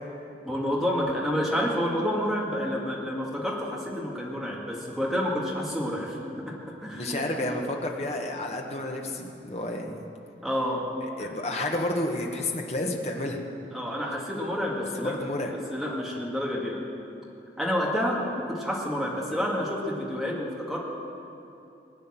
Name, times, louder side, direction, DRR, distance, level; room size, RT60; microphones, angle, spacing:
voice 1, 0.4-7.6 10.4-10.9 11.2-11.4 13.7-15.2 15.5-16.9 17.6-20.8, equal, ahead, -3 dB, 2.1 m, -29 dB
voice 2, 6.9-9.9 11.2-13.4 15.0-15.5, left 1 dB, 35° left, 1 dB, 1.5 m, -30 dB
20.5 x 8.9 x 7.5 m, 2.8 s
head